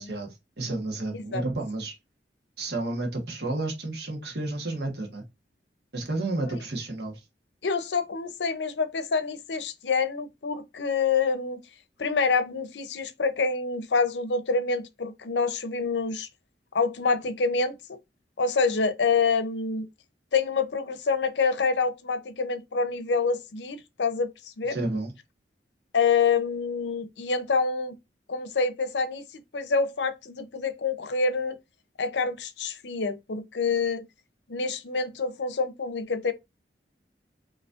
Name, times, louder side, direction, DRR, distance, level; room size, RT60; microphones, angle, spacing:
voice 1, 0.0-2.0 2.6-5.2 5.9-7.2 24.7-25.1, right 2 dB, 65° right, 1.3 m, -31 dB
voice 2, 1.1-1.4 6.5-6.6 7.6-11.6 12.0-16.3 16.7-18.0 18.4-19.9 20.3-24.8 25.9-28.0 28.3-31.6 32.0-34.1 34.5-36.3, left 4 dB, 80° left, 0.6 m, -27 dB
5.2 x 3.0 x 2.5 m
head